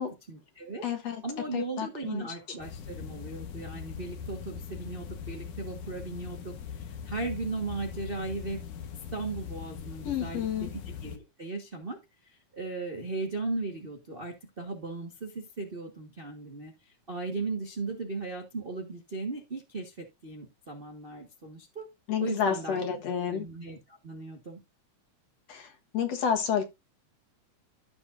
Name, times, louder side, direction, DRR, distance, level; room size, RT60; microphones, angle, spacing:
voice 1, 0.3-0.9 1.2-8.6 9.1-12.0 12.2-21.9 22.2-22.8 23.3-24.6, right 3 dB, 40° right, 0.8 m, -37 dB
voice 2, 0.8-1.2 1.5-2.3 10.0-10.7 22.1-23.5 25.5-25.7 25.9-26.6, left 7 dB, 60° left, 2.4 m, -30 dB
sound 1, 2.6-11.2, left 7 dB, 85° left, 2.8 m, -41 dB
13.5 x 7.0 x 2.6 m
omnidirectional pair, 3.4 m